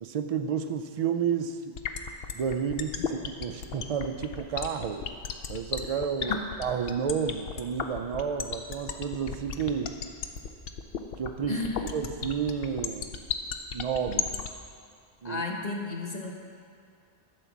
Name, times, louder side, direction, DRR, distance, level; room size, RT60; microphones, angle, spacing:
voice 1, 0.0-1.7 2.3-5.1 5.5-10.0 11.2-11.6 11.9-13.1 13.7-14.3 15.2-15.4, right 7 dB, 50° right, 7 dB, 0.4 m, -31 dB
sound 1, 1.8-14.5, left 8 dB, 65° left, 0.8 m, -33 dB
voice 2, 11.5-11.8 15.2-16.3, left 3 dB, 40° left, 0 dB, 1.1 m, -33 dB
11.0 x 4.7 x 7.2 m, 2.3 s
omnidirectional pair, 1.1 m